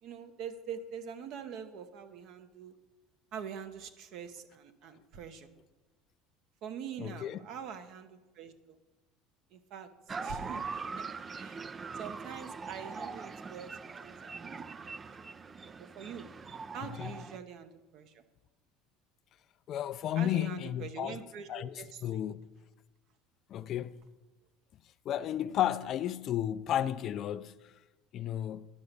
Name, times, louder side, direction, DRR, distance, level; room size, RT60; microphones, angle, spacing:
voice 1, 0.0-2.7 3.3-5.5 6.6-8.8 9.5-9.9 10.2-11.7 11.9-18.2 20.2-22.4, right 7 dB, 60° right, 1.0 m, -45 dB
voice 2, 7.0-7.4 17.0-17.1 19.7-21.2 21.5-22.5 23.5-24.0 25.0-27.7 28.1-28.7, left 11 dB, 50° left, 0.4 m, -33 dB
sound 1, 10.1-17.4, right 4 dB, 25° right, 0.3 m, -42 dB
11.0 x 5.9 x 6.7 m
supercardioid pair, 105°, 0 cm